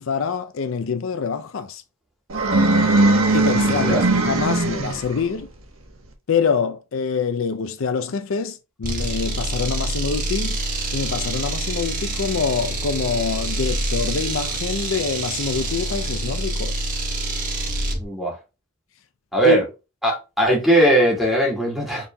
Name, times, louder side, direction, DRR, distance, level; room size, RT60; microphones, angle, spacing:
voice 1, 0.0-1.8 3.3-5.5 6.3-10.6 10.9-16.9 19.4-19.6, left 5 dB, 75° left, 0.5 m, -25 dB
sound 1, 2.3-5.2, right 2 dB, 90° right, 1.2 m, -19 dB
voice 2, 3.7-4.0 18.0-18.4 19.3-19.7 20.0-22.1, right 1 dB, ahead, 2.3 m, -19 dB
sound 2, 8.8-18.0, right 2 dB, 40° right, 1.2 m, -26 dB
5.4 x 4.3 x 2.2 m
head